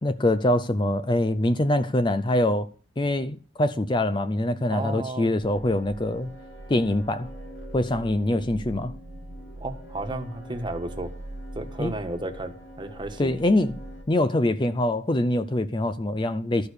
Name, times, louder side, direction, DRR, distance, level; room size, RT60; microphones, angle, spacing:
voice 1, 0.0-2.7 3.0-6.3 6.7-7.3 7.7-8.9 11.8-11.9 13.2-13.7 14.1-16.7, left 1 dB, 25° left, 0.5 m, -24 dB
voice 2, 4.7-5.3 9.6-11.1 11.5-13.4, right 2 dB, 25° right, 1.5 m, -33 dB
sound 1, 5.4-14.0, right 1 dB, 80° left, 3.3 m, -41 dB
13.0 x 6.7 x 6.7 m
head